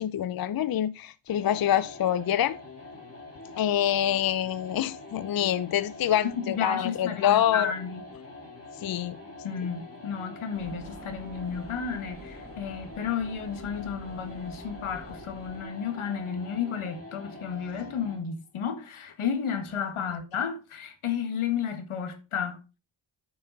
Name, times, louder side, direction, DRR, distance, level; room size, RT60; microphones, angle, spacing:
voice 1, 0.0-2.6 3.6-7.7 8.8-9.2 20.0-20.1, left 11 dB, 50° left, 0.5 m, -26 dB
sound 1, 1.3-18.3, left 3 dB, 30° left, 3.1 m, -45 dB
voice 2, 6.5-8.0 9.4-22.6, left 7 dB, 80° left, 1.7 m, -32 dB
sound 2, 10.5-15.6, right 3 dB, 25° right, 1.4 m, -48 dB
9.5 x 5.6 x 3.9 m
cardioid pair, 70°, 49 cm